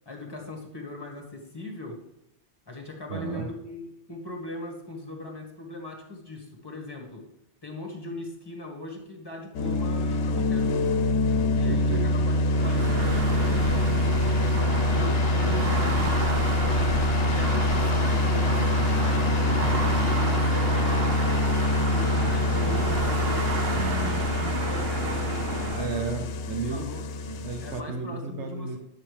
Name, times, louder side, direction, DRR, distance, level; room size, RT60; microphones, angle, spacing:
voice 1, 0.0-2.0 2.7-7.3 7.6-10.9 11.5-14.5 14.9-18.7 18.9-21.2 21.7-23.9 24.4-26.1 26.7-27.1 27.6-28.8, left 2 dB, 20° left, 2 dB, 1.6 m, -39 dB
voice 2, 3.1-3.5 11.7-12.1 15.4-16.2 23.5-24.6 25.8-26.9 27.3-28.8, right 4 dB, 80° right, 4 dB, 1.1 m, -34 dB
sound 1, 9.5-27.8, left 1 dB, 75° left, 0.9 m, -25 dB
sound 2, 12.5-25.8, right 3 dB, 60° right, 1.2 m, -31 dB
10.0 x 6.5 x 3.3 m, 0.83 s
omnidirectional pair, 1.2 m